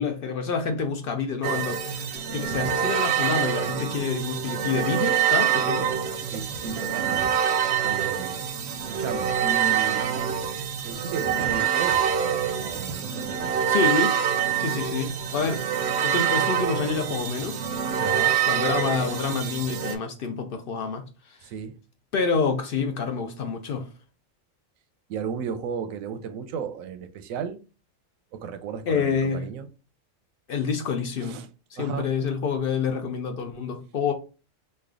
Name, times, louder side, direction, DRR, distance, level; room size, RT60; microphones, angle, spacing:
voice 1, 0.0-5.9 13.7-14.3 14.6-15.6 16.0-17.6 18.4-21.5 22.1-23.9 28.9-29.5 30.5-31.4 31.7-34.1, left 5 dB, 60° left, 0.6 m, -28 dB
sound 1, 1.4-19.9, right 9 dB, 65° right, 0.8 m, -26 dB
voice 2, 6.3-7.4 7.8-8.5 8.8-10.1 10.8-13.5 18.0-18.4 21.4-21.7 25.1-27.6 28.3-29.7 31.2-31.5 31.8-32.1, right 6 dB, 90° right, 1.0 m, -34 dB
3.2 x 2.3 x 3.5 m
omnidirectional pair, 1.4 m